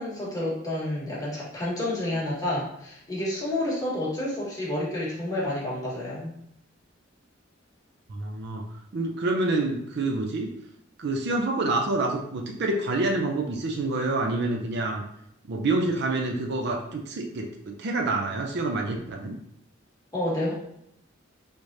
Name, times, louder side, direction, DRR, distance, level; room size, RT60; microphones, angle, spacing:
voice 1, 0.0-6.4 20.1-20.5, left 1 dB, 20° left, -7 dB, 1.3 m, -29 dB
voice 2, 8.1-8.7 8.9-10.5 11.0-15.0 15.5-19.4, right 2 dB, 60° right, 2 dB, 0.5 m, -27 dB
3.5 x 3.2 x 2.6 m, 0.76 s
head